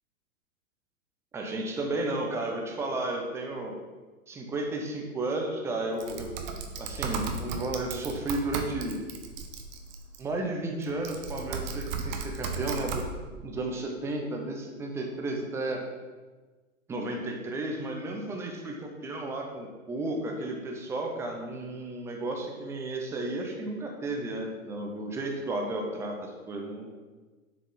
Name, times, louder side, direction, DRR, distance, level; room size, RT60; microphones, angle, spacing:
voice 1, 1.3-3.7 4.3-6.3 6.8-9.0 10.2-13.1 13.4-15.8 16.9-26.9, right 2 dB, 5° right, 1 dB, 0.4 m, -33 dB
Typing, 6.0-10.2 10.8-13.0, right 5 dB, 35° right, 0.7 m, -35 dB
6.7 x 4.7 x 3.8 m, 1.3 s
figure-of-eight pair, 105°, 42 cm